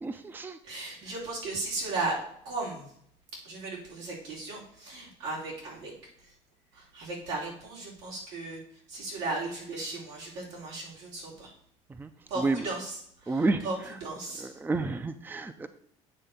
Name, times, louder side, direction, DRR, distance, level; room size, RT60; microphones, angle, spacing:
voice 1, 0.0-0.6 12.0-12.1 12.4-12.7 13.3-13.7 14.4-15.7, right 3 dB, 15° right, 10 dB, 0.5 m, -30 dB
voice 2, 0.6-2.9 3.4-5.9 6.7-8.6 8.9-11.5 12.3-13.8 14.0-14.6, right 3 dB, 90° right, -5 dB, 3.8 m, -36 dB
9.0 x 3.3 x 6.7 m, 0.67 s
supercardioid pair, 95°, 14 cm